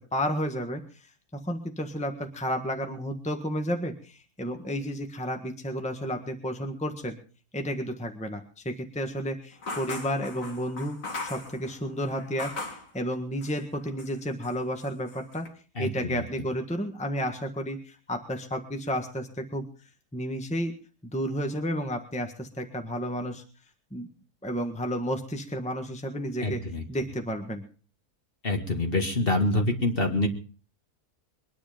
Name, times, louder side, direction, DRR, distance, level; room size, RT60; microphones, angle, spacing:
voice 1, 0.1-1.1 1.4-7.2 7.5-15.5 15.8-19.7 20.1-20.7 21.0-23.4 23.9-24.1 24.4-26.6 26.9-27.6, equal, 5° left, 5 dB, 1.5 m, -32 dB
sound 1, 9.6-12.9 13.4-14.2 14.4-15.5, left 3 dB, 60° left, 2.7 m, -39 dB
voice 2, 15.8-16.2 26.4-26.8 28.4-30.3, left 2 dB, 40° left, 4 dB, 2.2 m, -26 dB
22.5 x 10.5 x 5.1 m, 0.39 s
omnidirectional pair, 1.6 m